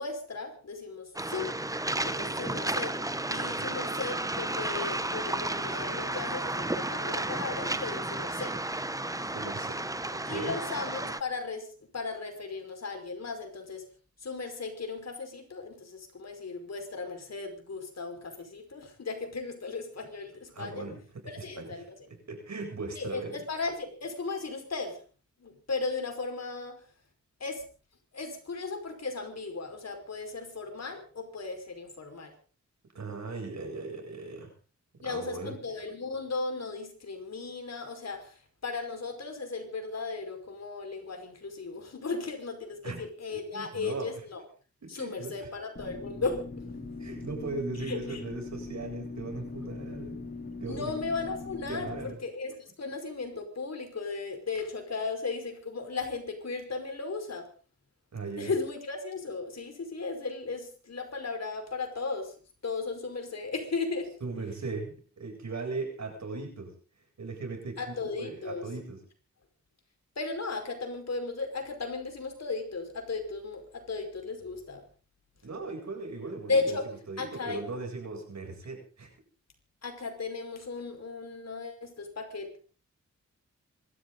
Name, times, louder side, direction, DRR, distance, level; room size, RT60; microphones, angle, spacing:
voice 1, 0.0-1.5 1.9-3.0 3.3-8.6 10.3-11.7 11.9-13.8 14.2-20.9 21.2-22.0 23.0-25.0 25.4-26.8 27.4-27.6 28.1-32.3 35.0-44.4 44.9-46.4 47.9-48.2 50.7-57.5 58.4-62.3 62.6-64.1 67.8-68.7 70.2-74.8 76.5-76.9 77.2-77.6 79.8-82.6, left 4 dB, 60° left, 5 dB, 5.3 m, -36 dB
Waves surf, 1.2-11.2, right 2 dB, 10° right, 0.9 m, -32 dB
voice 2, 9.3-9.8 10.1-10.6 20.5-21.8 22.3-23.4 32.9-34.5 35.0-35.5 42.8-43.0 43.3-44.1 44.8-45.5 47.0-50.2 50.6-50.8 51.7-52.1 58.1-58.5 64.2-66.7 67.2-69.0 75.4-76.8 77.1-79.1, right 3 dB, 70° right, 3 dB, 7.9 m, -38 dB
sound 1, 45.8-52.1, left 3 dB, 35° left, 4.5 m, -41 dB
26.5 x 13.5 x 4.1 m, 0.38 s
wide cardioid pair, 100°, 29 cm